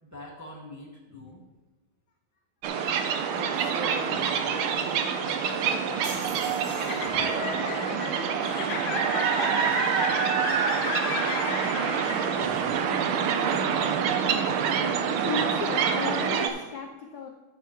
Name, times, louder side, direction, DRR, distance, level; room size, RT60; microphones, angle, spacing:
voice 1, 0.0-1.4 3.3-5.8 6.5-9.8 10.6-14.1, left 1 dB, 10° right, -4 dB, 1.5 m, -44 dB
sound 1, 2.6-16.5, right 7 dB, 85° right, 1.6 m, -26 dB
sound 2, 5.1-12.7, left 6 dB, 85° left, 1.8 m, -35 dB
sound 3, 6.0-7.5, right 3 dB, 55° right, 2.0 m, -41 dB
voice 2, 12.4-12.8 15.2-17.3, left 5 dB, 65° left, 3 dB, 1.0 m, -35 dB
12.0 x 8.1 x 3.1 m, 1.2 s
omnidirectional pair, 2.3 m